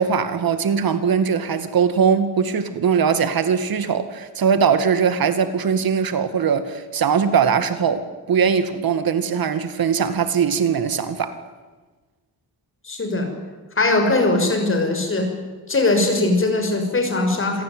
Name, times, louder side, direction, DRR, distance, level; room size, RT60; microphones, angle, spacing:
voice 1, 0.0-11.4, right 6 dB, 70° right, 2.2 m, -20 dB
voice 2, 12.8-13.3 13.8-15.3 15.7-17.6, left 2 dB, 35° left, 6.2 m, -20 dB
27.0 x 17.5 x 9.6 m
wide cardioid pair, 125°, 37 cm